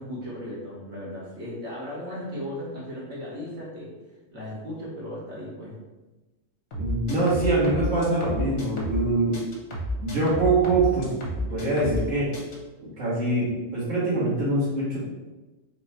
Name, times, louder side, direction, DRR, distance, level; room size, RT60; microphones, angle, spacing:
voice 1, 0.0-3.9 4.3-5.8, left 1 dB, 60° right, -6 dB, 1.6 m, -36 dB
sound 1, 6.7-9.1 9.3-12.1 12.3-12.6, equal, 55° left, 1.1 m, -31 dB
voice 2, 6.8-9.4 10.0-11.1 11.4-12.3 12.8-15.0, right 2 dB, 80° right, -10 dB, 1.8 m, -24 dB
4.0 x 2.3 x 4.2 m, 1.1 s
omnidirectional pair, 1.3 m